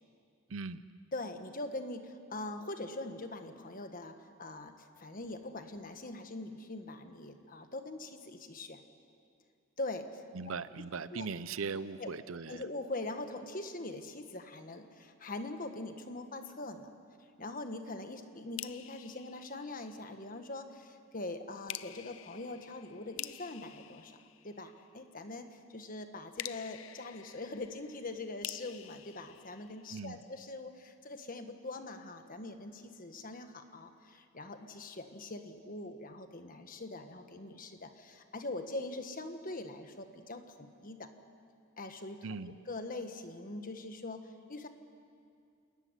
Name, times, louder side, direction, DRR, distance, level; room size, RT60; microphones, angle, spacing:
voice 1, 0.5-0.8 10.3-12.6 29.9-30.2 42.2-42.6, right 4 dB, 75° right, 15 dB, 0.7 m, -39 dB
voice 2, 1.1-8.8 9.8-10.2 11.1-11.3 12.0-12.1 12.5-16.9 17.4-24.2 24.4-41.1 41.8-44.7, left 2 dB, 40° left, 7 dB, 1.5 m, -42 dB
sound 1, 18.6-20.3 21.7-25.0 26.4-30.3, left 13 dB, 70° left, 0.6 m, -47 dB
27.5 x 14.0 x 9.9 m, 2.4 s
head